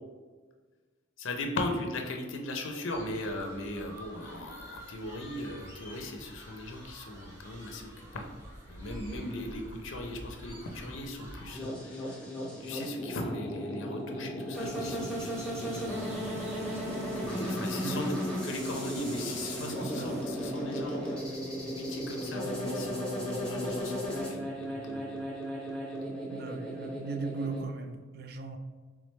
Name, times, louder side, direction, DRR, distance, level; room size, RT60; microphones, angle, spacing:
voice 1, 1.2-8.2 8.7-12.3 12.6-16.2 17.2-18.2 18.4-21.2 21.6-25.0, left 1 dB, 85° left, 3 dB, 0.6 m, -38 dB
sound 1, 2.9-11.6, equal, 15° right, 1.2 m, -48 dB
sound 2, 11.5-27.6, equal, 5° left, 0.7 m, -35 dB
sound 3, 14.5-20.2, right 1 dB, 35° right, 0.8 m, -49 dB
voice 2, 17.4-18.1 19.6-20.1 26.3-28.6, right 3 dB, 50° right, 7 dB, 0.3 m, -38 dB
3.5 x 3.3 x 3.1 m, 1.4 s
head